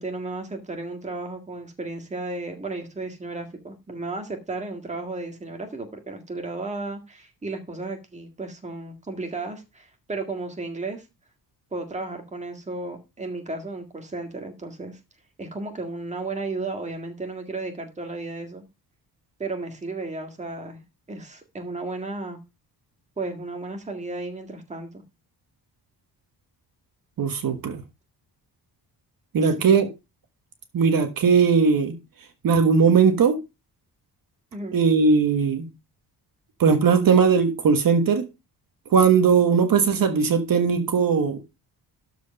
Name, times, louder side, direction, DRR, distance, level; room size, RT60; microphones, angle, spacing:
voice 1, 0.0-11.1 11.7-15.0 15.4-18.6 19.4-20.8 21.1-22.4 23.2-25.0 29.4-29.5 34.5-34.8, right 3 dB, 15° right, 1.8 m, -34 dB
voice 2, 27.2-27.8 29.3-29.9 30.7-32.0 32.4-33.4 34.7-35.7 36.6-38.2 38.9-41.4, right 5 dB, 60° right, 1.5 m, -19 dB
12.5 x 4.8 x 5.3 m
wide cardioid pair, 180°, 39 cm